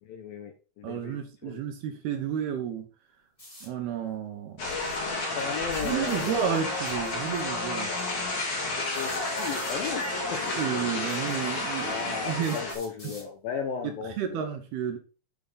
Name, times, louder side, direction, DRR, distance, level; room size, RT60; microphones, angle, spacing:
voice 1, 0.0-1.6 5.4-6.5 8.9-10.6 11.7-14.5, left 6 dB, 80° left, 4 dB, 2.1 m, -36 dB
voice 2, 0.8-2.9 3.6-4.6 5.8-7.9 10.6-12.6 13.0-13.1 13.8-15.0, right 9 dB, 70° right, 5 dB, 2.6 m, -31 dB
sound 1, 3.4-3.7 5.6-6.4 7.8-7.9 8.9-9.8 10.8-10.9 11.6-11.7 12.4-13.3, left 1 dB, 10° left, 2.1 m, -47 dB
sound 2, 4.6-12.7, left 2 dB, 45° left, 3.5 m, -31 dB
8.5 x 6.0 x 4.0 m, 0.35 s
omnidirectional pair, 5.5 m